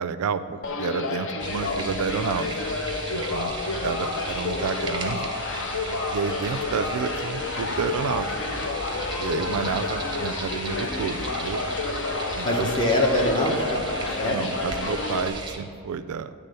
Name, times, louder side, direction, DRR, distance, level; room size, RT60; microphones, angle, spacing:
voice 1, 0.0-2.5 3.1-3.5 3.8-5.3 6.1-8.5 9.2-11.6 12.4-12.7 14.2-16.3, right 6 dB, 75° right, 12 dB, 0.3 m, -30 dB
sound 1, 0.6-15.3, left 3 dB, 55° left, 0.6 m, -30 dB
sound 2, 1.4-15.6, right 3 dB, 20° right, 0.7 m, -37 dB
voice 2, 3.6-4.0 9.4-9.7 12.4-14.4, left 1 dB, 20° left, 0 dB, 1.0 m, -25 dB
9.6 x 3.6 x 6.7 m, 2.4 s
head